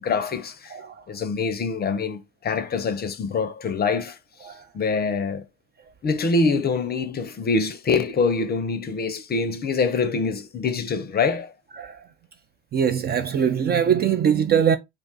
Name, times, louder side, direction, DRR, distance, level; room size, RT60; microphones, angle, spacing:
voice 1, 0.0-0.8 1.1-4.5 4.7-5.4 6.0-11.5, left 4 dB, 30° left, 0.6 m, -25 dB
voice 2, 12.7-14.8, right 8 dB, 30° right, 0.4 m, -22 dB
2.5 x 2.3 x 3.9 m
hypercardioid pair, 60°, 35 cm